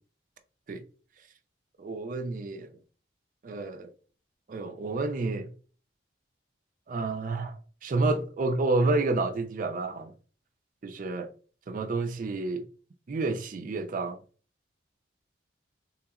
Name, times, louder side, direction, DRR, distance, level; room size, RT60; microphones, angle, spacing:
voice 1, 1.8-2.7 3.4-3.9 4.5-5.5 6.9-10.1 10.8-11.3 11.7-12.7 13.1-14.2, right 3 dB, 45° right, 0.4 m, -29 dB
3.4 x 2.9 x 2.4 m
head